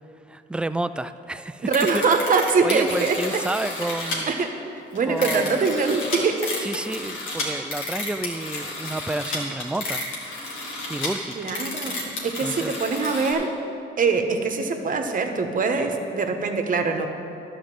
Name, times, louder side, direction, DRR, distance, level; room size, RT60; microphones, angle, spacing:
voice 1, 0.3-2.0 2.6-4.3 5.1-5.6 6.6-10.0 10.8-11.6 12.4-12.7, right 2 dB, 5° right, 11 dB, 0.3 m, -30 dB
voice 2, 1.6-3.4 4.0-6.4 11.4-13.5 14.0-17.1, right 4 dB, 45° right, 5 dB, 1.1 m, -23 dB
sound 1, 1.7-4.2 4.9-13.3, left 2 dB, 90° left, 2.1 m, -31 dB
11.5 x 5.0 x 7.7 m, 2.6 s
cardioid pair, 90°, 20 cm